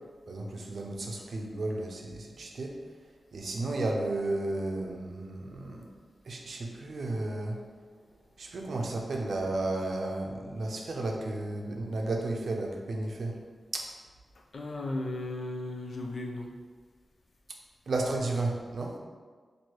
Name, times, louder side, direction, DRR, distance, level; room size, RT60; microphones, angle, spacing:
voice 1, 0.3-2.7 3.3-5.9 6.2-7.6 8.4-13.3 13.7-13.9 17.9-19.0, right 2 dB, 70° right, 1 dB, 0.5 m, -33 dB
voice 2, 14.5-16.5, left 2 dB, 60° left, 1 dB, 0.5 m, -35 dB
3.0 x 2.6 x 4.4 m, 1.5 s
cardioid pair, 75°, 0 cm